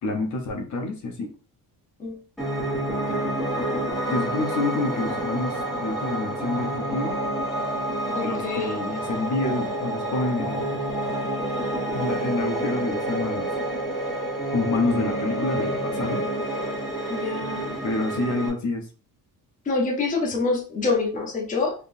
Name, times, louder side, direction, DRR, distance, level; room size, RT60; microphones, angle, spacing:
voice 1, 0.0-1.3 4.1-7.2 8.2-10.7 11.9-13.5 14.5-16.3 17.8-18.9, left 3 dB, 50° left, 2 dB, 0.9 m, -28 dB
Piano, 2.4-18.5, right 1 dB, ahead, 1.3 m, -28 dB
voice 2, 8.1-8.7 17.1-17.7 19.7-21.7, left 3 dB, 20° left, -1 dB, 0.8 m, -26 dB
3.6 x 3.1 x 2.6 m, 0.37 s
cardioid pair, 170°, 36 cm